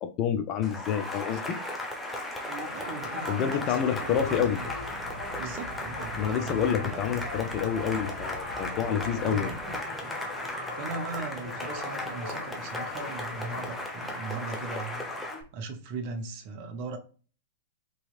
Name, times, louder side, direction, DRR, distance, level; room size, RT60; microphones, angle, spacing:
voice 1, 0.0-1.6 3.3-4.6 6.1-9.5, left 8 dB, 35° left, 0.4 m, -28 dB
Cheering / Applause, 0.6-15.4, left 2 dB, 5° left, 0.7 m, -36 dB
voice 2, 2.5-4.7 5.4-7.1 9.2-9.5 10.7-15.1 15.5-17.0, right 4 dB, 45° right, 0.6 m, -38 dB
sound 1, 2.6-13.8, left 2 dB, 55° left, 1.4 m, -41 dB
sound 2, 4.0-9.8, equal, 70° left, 0.8 m, -45 dB
2.8 x 2.7 x 2.3 m
figure-of-eight pair, 100°, 0 cm